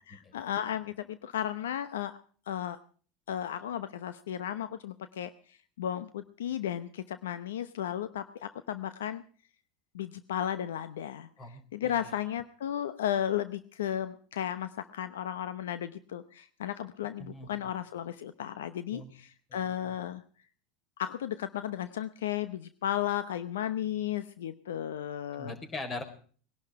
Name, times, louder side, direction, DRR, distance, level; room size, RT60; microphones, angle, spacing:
voice 1, 0.1-2.2 2.5-2.8 3.3-5.3 5.8-9.2 9.9-11.3 11.7-20.2 21.0-25.5, left 10 dB, 85° left, 12 dB, 0.9 m, -34 dB
voice 2, 11.4-12.1 17.2-17.5 18.9-19.1 19.5-20.0 25.3-26.0, left 2 dB, 30° left, 8 dB, 4.2 m, -41 dB
20.5 x 11.5 x 4.9 m, 0.43 s
hypercardioid pair, 95°, 0 cm